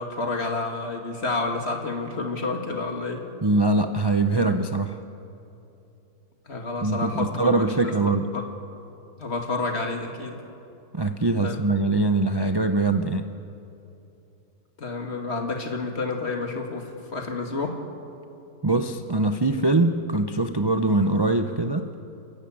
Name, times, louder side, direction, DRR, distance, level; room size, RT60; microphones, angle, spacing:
voice 1, 0.0-3.2 6.4-8.5 9.2-10.3 11.4-11.6 14.8-17.8, left 3 dB, 40° left, 3 dB, 2.4 m, -29 dB
voice 2, 3.4-5.0 6.8-8.3 10.9-13.3 18.6-21.9, right 2 dB, 30° right, 7 dB, 0.4 m, -23 dB
29.5 x 12.5 x 8.8 m, 2.8 s
omnidirectional pair, 1.6 m